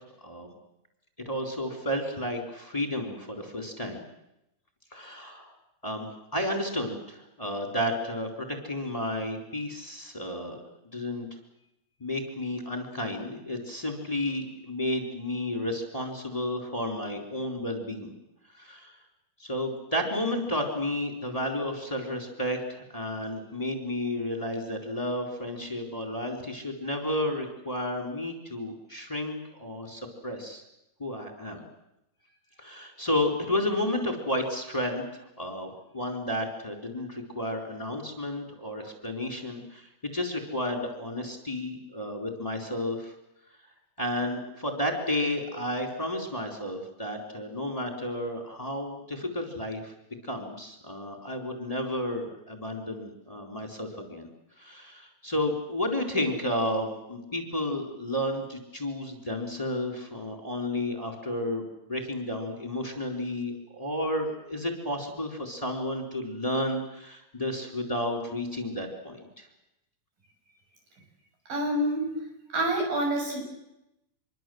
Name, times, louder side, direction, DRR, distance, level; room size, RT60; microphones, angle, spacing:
voice 1, 1.2-4.0 4.9-5.5 5.8-10.6 10.9-11.3 12.0-18.1 18.5-19.0 19.4-30.6 31.0-31.6 32.6-43.1 44.0-49.9 50.2-54.3 54.6-69.5, left 1 dB, 10° left, 2 dB, 3.9 m, -32 dB
voice 2, 71.5-72.2 72.5-73.4, right 1 dB, 90° right, 2 dB, 8.7 m, -27 dB
26.0 x 23.5 x 7.9 m, 0.88 s
omnidirectional pair, 3.9 m